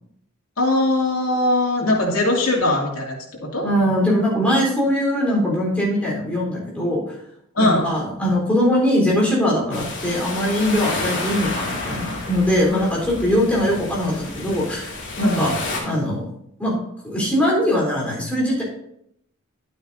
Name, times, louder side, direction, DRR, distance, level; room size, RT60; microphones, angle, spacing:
voice 1, 0.6-3.7 7.5-7.9 12.7-12.9 15.2-15.4, left 2 dB, 90° left, -2 dB, 2.6 m, -21 dB
voice 2, 3.6-7.0 7.6-14.9 15.2-15.5 15.8-16.2 16.6-16.8 17.0-18.6, equal, 5° left, -4 dB, 3.9 m, -21 dB
sound 1, 9.7-15.8, left 2 dB, 60° left, 2.9 m, -30 dB
11.5 x 9.1 x 2.7 m, 0.75 s
head